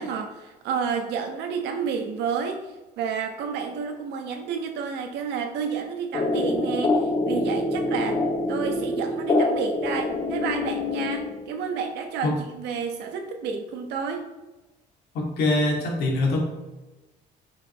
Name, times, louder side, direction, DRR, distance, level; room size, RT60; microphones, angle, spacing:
voice 1, 0.0-2.6 3.0-8.2 8.5-14.3, right 6 dB, 85° right, 4 dB, 1.2 m, -30 dB
sound 1, 6.1-11.7, left 2 dB, 30° left, 0.8 m, -25 dB
voice 2, 15.1-16.4, left 2 dB, 75° left, 0 dB, 2.2 m, -23 dB
8.6 x 5.2 x 3.1 m, 1.1 s
cardioid pair, 110°, 17 cm